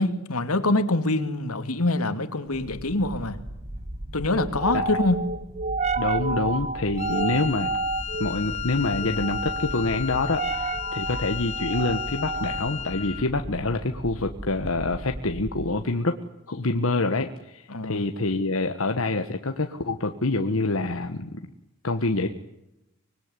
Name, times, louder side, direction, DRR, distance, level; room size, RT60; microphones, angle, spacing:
voice 1, 0.0-3.4 4.1-5.2 17.7-18.0, left 2 dB, 90° left, 9 dB, 2.5 m, -25 dB
sound 1, 2.5-15.9, right 3 dB, 30° right, 1.5 m, -32 dB
voice 2, 6.0-7.7 8.2-16.2 16.5-21.4 21.8-22.3, left 2 dB, 65° left, 6 dB, 1.4 m, -26 dB
Wind instrument woodwind instrument, 7.0-13.3, left 9 dB, 30° left, 1.2 m, -34 dB
25.0 x 20.5 x 9.8 m, 0.90 s
head